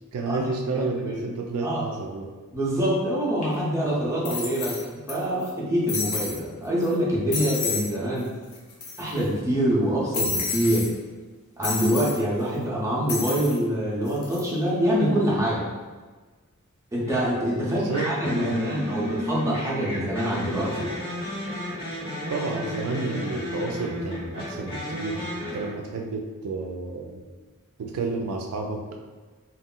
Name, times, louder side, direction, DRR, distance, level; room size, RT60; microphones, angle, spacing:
voice 1, 0.1-2.4 17.7-19.3 22.3-27.2 27.8-29.0, right 3 dB, 70° right, 1 dB, 0.3 m, -31 dB
voice 2, 2.5-4.8 5.1-8.3 9.0-10.9 11.6-15.6 16.9-20.9, equal, 15° right, -6 dB, 0.6 m, -25 dB
sound 1, 3.4-3.5 4.2-5.1 5.4-5.5 5.9-6.4 6.8-6.9 7.3-7.9 8.2-8.3 8.5-9.2 10.1-10.9 11.6-12.2 13.1-13.6 14.1-14.4, left 4 dB, 75° left, 0.7 m, -30 dB
sound 2, 17.0-17.3 17.9-25.7, left 1 dB, 25° left, 0.9 m, -33 dB
2.3 x 2.0 x 3.7 m, 1.4 s
head